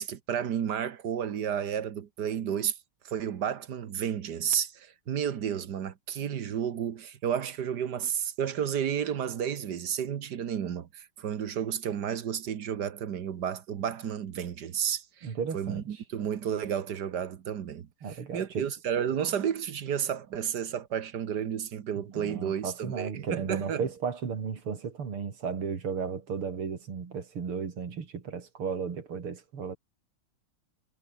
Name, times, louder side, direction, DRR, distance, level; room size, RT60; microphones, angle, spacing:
voice 1, 0.0-2.8 3.0-23.9, right 8 dB, 55° right, 1.6 m, -32 dB
voice 2, 15.2-15.8 18.0-18.7 22.1-29.8, right 6 dB, 80° right, 3.6 m, -34 dB
omnidirectional pair, 2.4 m